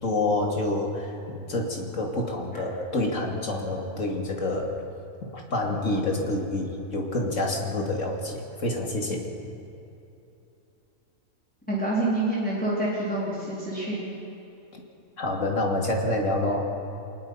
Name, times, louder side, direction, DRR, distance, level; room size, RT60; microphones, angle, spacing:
voice 1, 0.0-4.7 5.3-9.3 14.7-14.8 15.2-16.7, left 2 dB, 65° left, 1 dB, 2.9 m, -27 dB
voice 2, 11.7-14.1, right 2 dB, 5° left, -7 dB, 4.1 m, -27 dB
24.0 x 20.5 x 5.7 m, 2.8 s
omnidirectional pair, 1.4 m